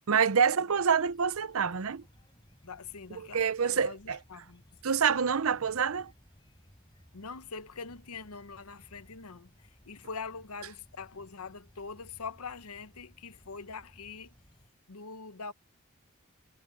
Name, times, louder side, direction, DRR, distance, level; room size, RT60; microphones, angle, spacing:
voice 1, 0.1-2.0 3.3-4.2 4.8-6.1, right 6 dB, 70° right, 0.6 m, -26 dB
sound 1, 0.9-14.7, equal, 20° left, 3.8 m, -60 dB
voice 2, 2.6-4.6 7.1-14.3 14.9-15.5, left 5 dB, 85° left, 0.9 m, -43 dB
head